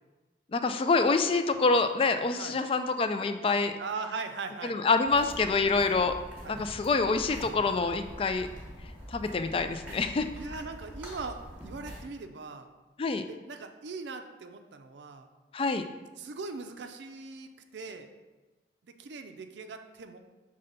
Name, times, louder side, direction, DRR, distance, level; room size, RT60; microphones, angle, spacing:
voice 1, 0.5-3.7 4.6-6.2 6.5-8.5 9.1-10.3 13.0-13.2 15.5-15.8, left 4 dB, 30° left, 8 dB, 0.3 m, -26 dB
voice 2, 3.8-4.7 6.0-6.1 6.4-6.6 10.3-12.7 13.3-15.3 16.2-18.1 18.8-20.2, right 4 dB, 80° right, 7 dB, 0.5 m, -40 dB
sound 1, 5.1-12.0, equal, 10° right, 1.2 m, -45 dB
5.5 x 3.3 x 5.2 m, 1.2 s
head